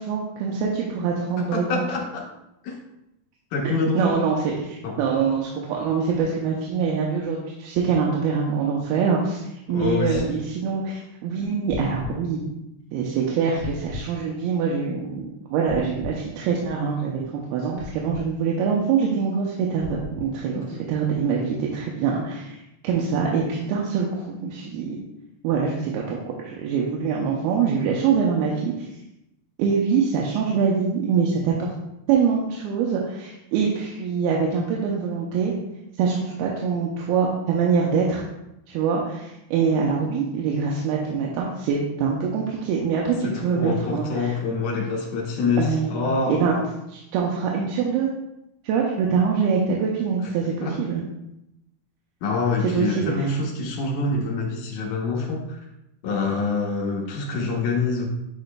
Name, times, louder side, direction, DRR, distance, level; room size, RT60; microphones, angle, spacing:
voice 1, 0.0-1.9 4.0-9.4 9.7-12.4 12.9-22.6 22.8-25.0 25.4-28.7 29.6-31.7 32.1-35.5 36.0-38.2 38.7-44.4 45.6-45.9 46.3-46.6 46.9-48.1 48.6-51.0 52.6-53.3, right 6 dB, 80° right, -2 dB, 2.5 m, -24 dB
voice 2, 1.5-2.3 2.6-2.8 3.5-4.1 4.8-5.0 9.7-10.2 20.7-20.8 43.2-46.5 50.6-50.8 52.2-55.6 56.0-58.1, left 4 dB, 70° left, -1 dB, 2.0 m, -26 dB
sound 1, 9.8-10.3 11.7-12.2 13.6-14.1 15.7-16.2 17.8-18.3 19.8-20.3, left 3 dB, 55° left, 2.7 m, -35 dB
9.1 x 4.9 x 2.2 m, 0.87 s
omnidirectional pair, 4.5 m